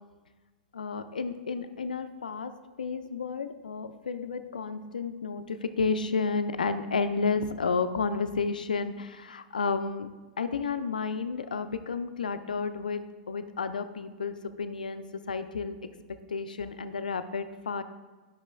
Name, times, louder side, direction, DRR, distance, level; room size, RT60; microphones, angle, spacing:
voice 1, 0.7-2.5 2.8-10.1 10.4-17.8, left 4 dB, 80° left, 10 dB, 0.4 m, -31 dB
11.0 x 5.7 x 2.3 m, 1.3 s
figure-of-eight pair, 100°, 4 cm